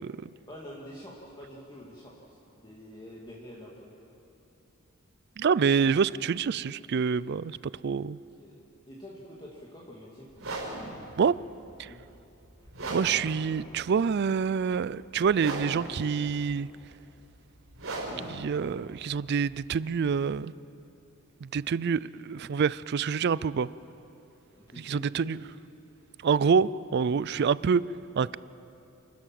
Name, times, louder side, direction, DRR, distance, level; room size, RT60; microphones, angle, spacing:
voice 1, 0.5-2.2 2.5-3.9 8.4-8.6 8.8-10.3 11.8-12.0 24.5-25.3, equal, 20° left, -5 dB, 2.2 m, -46 dB
voice 2, 5.4-7.6 7.8-8.2 11.2-11.4 11.8-11.9 12.9-16.7 18.3-20.5 21.4-23.7 24.8-25.4 26.2-27.8 28.2-28.4, right 6 dB, 50° right, 19 dB, 0.4 m, -26 dB
sound 1, 10.3-20.2, right 2 dB, 70° right, 5.1 m, -39 dB
28.5 x 13.5 x 7.6 m, 2.8 s
head